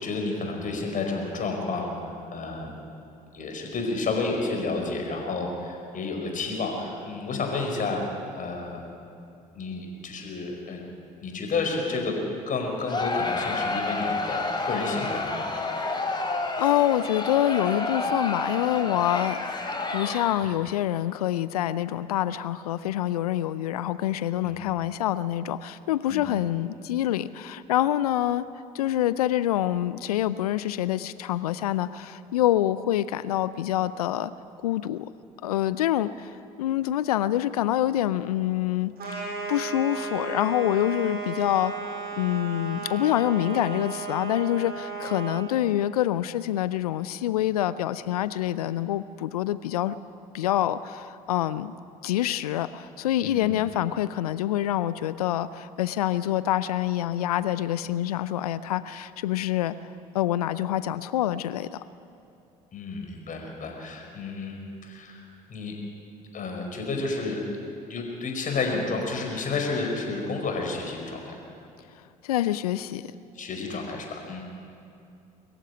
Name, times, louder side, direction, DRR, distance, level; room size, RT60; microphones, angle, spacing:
voice 1, 0.0-2.7 3.3-8.0 8.4-8.8 9.5-10.9 11.2-12.2 12.5-15.3 24.4-24.6 26.1-26.3 53.2-53.6 62.7-65.2 65.5-65.7 66.3-67.4 67.9-71.4 73.3-74.4, left 3 dB, 45° left, 2 dB, 5.2 m, -31 dB
Crowd, 12.9-20.6, left 3 dB, 25° left, 3.3 m, -29 dB
voice 2, 16.6-19.6 19.9-28.4 28.7-34.3 34.6-35.1 35.4-38.9 39.5-41.7 42.2-50.0 50.3-51.7 52.0-59.7 60.1-61.8 72.2-73.1, left 13 dB, 80° left, 16 dB, 0.5 m, -26 dB
sound 1, 39.0-45.5, right 4 dB, 55° right, 6.3 m, -35 dB
23.0 x 15.0 x 9.8 m, 2.6 s
hypercardioid pair, 55°, 19 cm